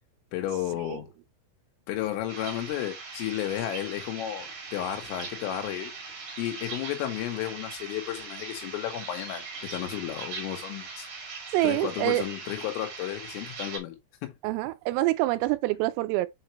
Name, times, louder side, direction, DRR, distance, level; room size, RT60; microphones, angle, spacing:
voice 1, 0.3-1.1 1.9-5.9 6.4-11.1 11.6-14.3, left 12 dB, 75° left, 3.9 m, -33 dB
sound 1, 2.3-13.8, right 4 dB, 45° right, 2.9 m, -40 dB
voice 2, 11.5-12.2 14.4-16.3, right 18 dB, 85° right, 3.1 m, -26 dB
7.9 x 4.7 x 3.0 m
omnidirectional pair, 6.0 m